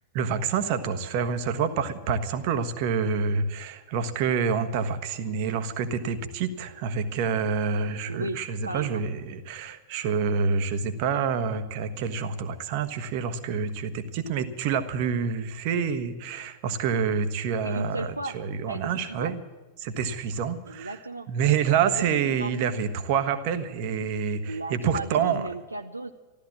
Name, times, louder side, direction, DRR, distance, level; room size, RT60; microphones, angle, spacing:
voice 1, 0.1-19.4 19.8-21.0 21.3-25.5, right 6 dB, 45° right, 9 dB, 1.2 m, -27 dB
voice 2, 8.1-8.4 8.6-9.0 17.6-18.4 18.7-19.3 20.6-21.3 22.0-22.5 24.5-26.1, right 2 dB, 85° right, 6 dB, 0.6 m, -35 dB
14.0 x 13.0 x 7.4 m, 1.2 s
figure-of-eight pair, 90°, 0 cm